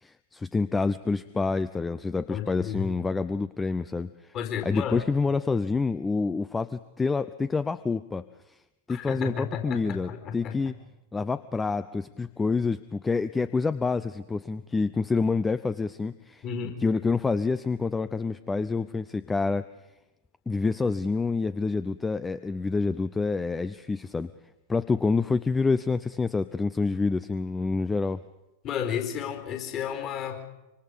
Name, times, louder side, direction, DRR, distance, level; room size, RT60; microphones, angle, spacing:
voice 1, 0.0-4.3 4.6-8.2 8.9-10.7 11.1-16.4 16.8-19.7 20.5-24.3 24.7-28.2, left 4 dB, 10° left, 14 dB, 0.7 m, -27 dB
voice 2, 2.3-2.9 4.3-5.0 8.9-10.6 16.4-16.8 28.6-30.4, left 8 dB, 35° left, 5 dB, 4.6 m, -32 dB
26.0 x 25.5 x 5.3 m, 0.96 s
figure-of-eight pair, 90°, 0 cm